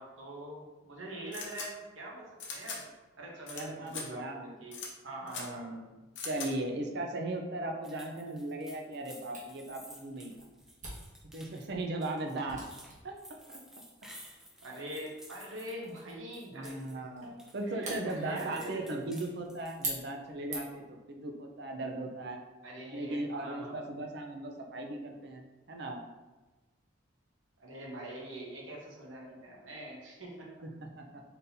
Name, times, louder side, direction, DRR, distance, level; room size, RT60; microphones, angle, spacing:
voice 1, 0.0-2.8 3.2-4.8 5.0-5.8 12.2-12.5 14.6-16.8 17.2-17.3 17.6-18.9 22.6-23.9 27.6-30.5, right 1 dB, 80° right, -2 dB, 1.1 m, -44 dB
sound 1, 1.3-1.7 2.4-2.8 3.5-3.6 3.9-4.0 4.7-4.9 5.3-5.4 6.2-6.5, left 5 dB, 60° left, 0.8 m, -40 dB
voice 2, 3.5-4.5 5.3-10.5 11.3-12.6 13.0-13.2 13.5-13.6 16.5-22.4 22.9-26.0 30.6-31.2, right 2 dB, 55° right, 3 dB, 0.6 m, -38 dB
sound 2, 7.8-16.9 17.2-20.1, equal, 5° right, 0.5 m, -54 dB
Camera, 9.3-20.9, right 2 dB, 40° right, 1.1 m, -46 dB
4.1 x 3.9 x 2.7 m, 1.2 s
head